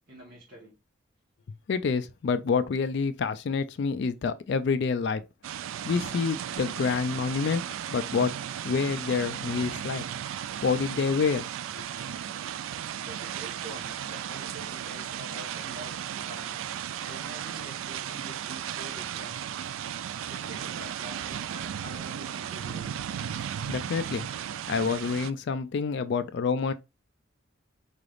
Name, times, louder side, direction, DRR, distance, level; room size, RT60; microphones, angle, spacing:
voice 1, 0.1-0.7 13.0-16.6 17.0-19.4 20.2-23.1, right 1 dB, 50° right, 1.4 m, -46 dB
voice 2, 1.7-5.2 5.8-7.6 7.9-8.3 8.6-10.0 10.6-11.5 11.7-11.8 23.7-24.3 24.7-26.7, left 5 dB, 55° left, 0.3 m, -27 dB
sound 1, 5.4-25.3, right 9 dB, 80° right, 0.3 m, -35 dB
4.7 x 3.3 x 2.5 m
head